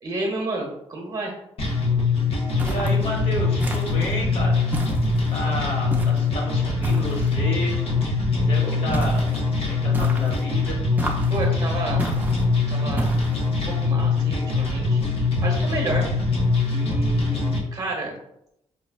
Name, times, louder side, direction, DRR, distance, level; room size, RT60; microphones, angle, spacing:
voice 1, 0.0-1.3 8.6-8.8 11.3-13.1 13.8-15.0 15.4-16.1 16.7-18.2, right 2 dB, 35° right, 0 dB, 1.0 m, -31 dB
sound 1, 1.6-17.6, left 3 dB, 55° left, 0.7 m, -23 dB
voice 2, 2.6-4.6 5.3-7.8 8.4-9.2 9.7-10.8, left 1 dB, 75° left, -3 dB, 1.3 m, -31 dB
sound 2, 2.6-3.1 3.6-4.2 4.7-5.4 5.9-6.3 6.8-7.4 8.9-9.4 9.9-10.5 11.0-11.5 12.0-12.5 13.0-13.5, right 1 dB, 15° right, 0.5 m, -31 dB
5.2 x 2.2 x 2.4 m, 0.79 s
cardioid pair, 135°, 11 cm